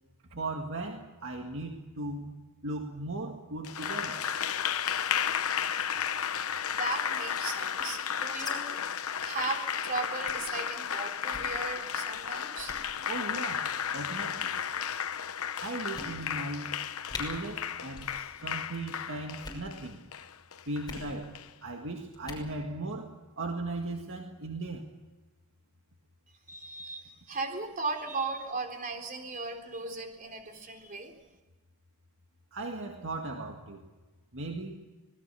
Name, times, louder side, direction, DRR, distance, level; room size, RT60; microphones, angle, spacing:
voice 1, 0.3-2.4 2.6-4.3 13.1-14.5 15.6-16.8 17.2-20.0 20.7-24.9 32.5-33.8 34.3-34.7, right 2 dB, 60° right, 3 dB, 2.0 m, -37 dB
Applause, 3.6-21.5, left 8 dB, 70° left, 1.0 m, -33 dB
voice 2, 6.7-8.8 9.2-13.0 26.5-31.1, right 3 dB, 40° right, 4 dB, 3.9 m, -37 dB
sound 1, 7.4-8.5 8.8-8.9 9.1-9.3 9.7-9.9 10.3-10.5 11.2-11.5 12.1-12.3 12.6-12.8 13.7-14.2 14.9-15.0 15.4-15.5 15.9-16.5 16.8-16.9 17.1-17.2 17.9-18.2 18.4-18.8 19.3-19.7 20.8-21.1 22.1-22.5, left 3 dB, 20° left, 5.9 m, -43 dB
25.5 x 19.0 x 7.0 m, 1.2 s
head